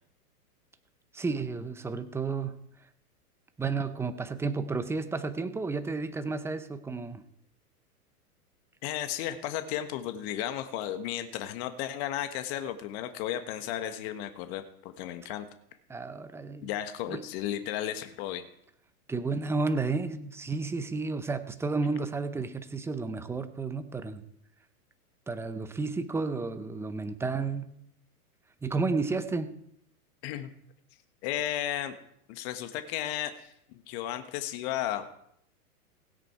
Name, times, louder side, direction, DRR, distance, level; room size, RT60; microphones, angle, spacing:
voice 1, 1.1-2.5 3.6-7.2 15.9-16.7 17.1-17.2 19.1-24.2 25.3-27.7 28.6-29.5, right 4 dB, 5° right, 10 dB, 0.6 m, -32 dB
voice 2, 8.8-15.5 16.6-18.4 30.2-30.5 31.2-31.9 32.3-35.0, left 11 dB, 45° left, 8 dB, 1.4 m, -34 dB
16.5 x 9.0 x 4.7 m, 0.72 s
hypercardioid pair, 125°, 46 cm